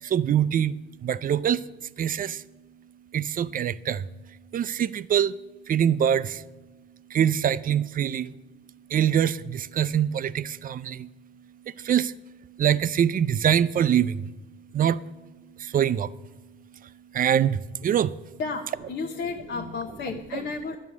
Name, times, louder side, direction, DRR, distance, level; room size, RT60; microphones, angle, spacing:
voice 1, 0.0-2.5 3.1-6.5 7.1-8.4 8.9-18.4, right 9 dB, 45° right, 0.4 m, -25 dB
voice 2, 18.4-20.8, left 4 dB, 65° left, 0.9 m, -32 dB
11.0 x 6.3 x 8.3 m
cardioid pair, 90°, 20 cm